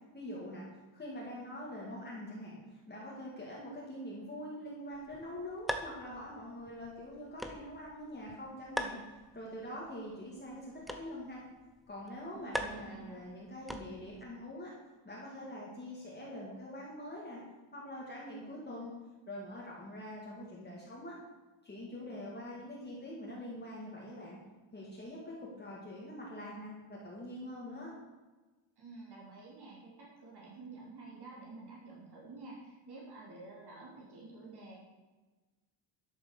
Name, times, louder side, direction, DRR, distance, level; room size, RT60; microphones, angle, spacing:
voice 1, 0.1-0.7 0.9-11.4 11.9-14.7 15.0-17.4 17.7-18.9 19.3-21.2 21.6-24.4 24.7-27.9, left 1 dB, 20° left, -5 dB, 2.3 m, -44 dB
sound 1, 4.9-14.2, equal, ahead, 0.8 m, -44 dB
voice 2, 12.3-13.2 28.8-34.8, right 3 dB, 50° right, -4 dB, 3.4 m, -50 dB
12.5 x 7.3 x 6.6 m, 1.2 s
wide cardioid pair, 170°, 48 cm